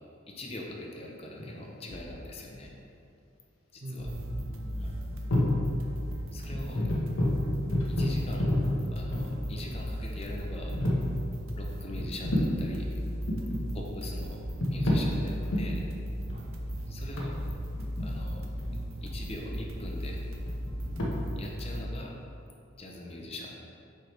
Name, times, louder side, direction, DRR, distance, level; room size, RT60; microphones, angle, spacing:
voice 1, 0.3-2.7 3.7-4.1 4.8-5.0 6.3-6.8 8.0-8.5 8.9-10.7 11.5-12.9 13.7-14.4 14.7-15.8 16.9-17.3 18.0-18.4 19.0-20.2 21.3-22.1 22.8-23.6, left 2 dB, 30° left, -1 dB, 0.7 m, -42 dB
sound 1, 1.4-2.2 4.0-4.1 4.3-4.5 5.1-5.7 6.0-6.1 6.5-9.7 10.2-10.3 10.7-11.1 12.0-12.6 13.1-13.6 14.3-15.1 15.5-15.7 16.3-19.3 19.7-21.1, left 1 dB, 85° left, 1.2 m, -30 dB
voice 2, 3.8-5.1 6.3-6.6 7.0-7.4 13.5-13.8 16.3-16.6 21.0-21.3, right 1 dB, 40° right, -1 dB, 0.7 m, -44 dB
sound 2, 4.0-21.8, equal, 85° right, 0.7 m, -36 dB
7.5 x 5.0 x 3.3 m, 2.6 s
head